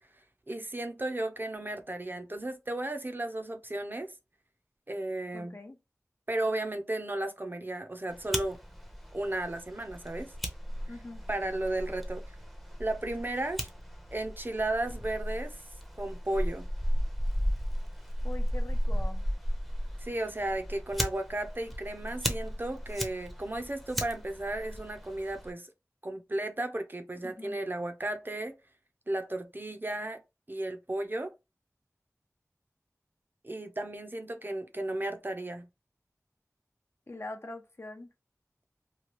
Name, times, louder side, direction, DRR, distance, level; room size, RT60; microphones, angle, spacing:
voice 1, 0.5-4.1 4.9-5.6 6.3-8.6 9.1-10.3 11.3-12.2 12.8-13.7 14.1-15.5 16.0-16.7 20.0-25.7 26.0-28.5 29.1-30.2 30.5-31.3 33.4-35.7, right 1 dB, 35° right, 0.6 m, -34 dB
voice 2, 5.3-5.8 10.9-11.2 18.2-19.2 27.2-27.6 37.1-38.1, left 2 dB, 50° left, 0.6 m, -43 dB
Fire, 8.1-25.5, equal, ahead, 0.7 m, -35 dB
3.0 x 2.2 x 3.0 m
wide cardioid pair, 50°, 6 cm